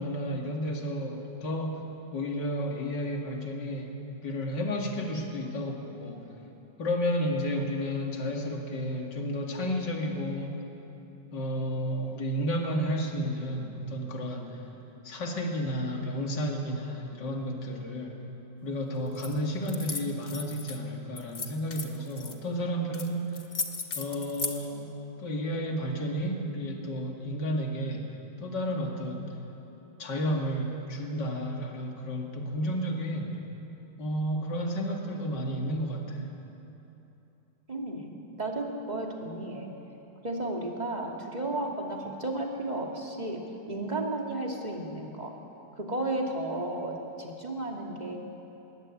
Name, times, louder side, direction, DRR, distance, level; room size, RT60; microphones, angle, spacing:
voice 1, 0.0-1.8 2.1-4.0 4.2-6.3 6.8-10.6 11.3-14.6 15.0-18.2 18.6-23.4 24.0-24.9 25.2-28.1 28.4-29.3 30.0-33.4 34.0-36.3, equal, 70° left, 1 dB, 2.8 m, -32 dB
sound 1, 19.1-19.3 19.6-20.8 21.2-22.3 22.9-23.1 23.3-24.6, left 4 dB, 45° left, 1.8 m, -35 dB
voice 2, 37.7-38.1 38.4-39.7 40.2-45.3 45.8-48.2, right 2 dB, 20° right, 0 dB, 2.5 m, -33 dB
20.5 x 20.5 x 8.7 m, 3.0 s
omnidirectional pair, 2.0 m